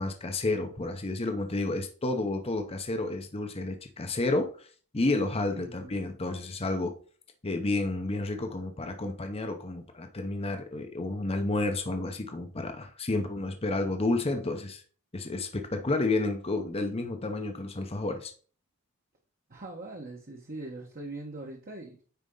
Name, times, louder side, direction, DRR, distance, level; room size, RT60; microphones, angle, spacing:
voice 1, 0.0-4.7 4.9-6.9 7.4-14.8 15.1-18.3, left 2 dB, 25° left, 5 dB, 0.8 m, -30 dB
voice 2, 5.5-6.0 19.5-22.0, right 2 dB, 40° right, 0 dB, 1.2 m, -42 dB
9.3 x 4.4 x 3.8 m, 0.42 s
head